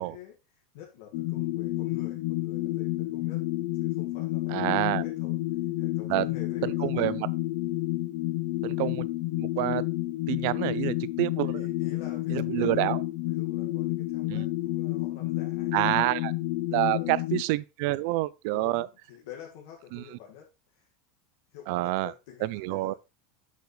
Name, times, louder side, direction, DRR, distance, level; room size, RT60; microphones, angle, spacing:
voice 1, 0.0-3.4 3.8-4.7 5.0-5.4 5.8-7.2 11.4-12.9 13.2-15.7 16.7-17.3 18.5-20.9 21.5-22.9, left 9 dB, 65° left, 1.9 m, -48 dB
sound 1, 1.1-17.4, left 18 dB, 50° left, 0.7 m, -30 dB
voice 2, 4.5-5.0 6.1-6.2 6.6-7.2 8.6-9.1 9.4-9.8 10.3-11.7 12.3-13.0 14.3-14.4 15.7-16.3 16.7-18.9 19.9-20.0 21.7-22.1 22.4-22.9, right 19 dB, 50° right, 0.4 m, -28 dB
8.1 x 7.0 x 3.2 m
supercardioid pair, 180°, 0 cm